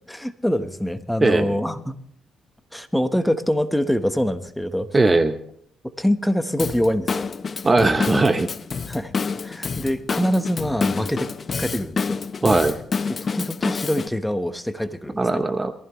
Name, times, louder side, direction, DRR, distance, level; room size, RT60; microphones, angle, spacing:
voice 1, 0.1-2.0 2.7-4.9 6.0-7.3 8.9-9.1 9.4-11.3 11.6-12.2 13.2-15.4, equal, 5° left, 9 dB, 1.1 m, -24 dB
voice 2, 4.9-5.4 7.6-8.5 12.4-12.8 15.2-15.7, right 3 dB, 25° right, 10 dB, 0.8 m, -18 dB
Drum kit / Drum, 6.6-14.1, left 5 dB, 40° left, 0.7 m, -28 dB
22.0 x 15.0 x 3.1 m, 0.66 s
cardioid pair, 90°, 0 cm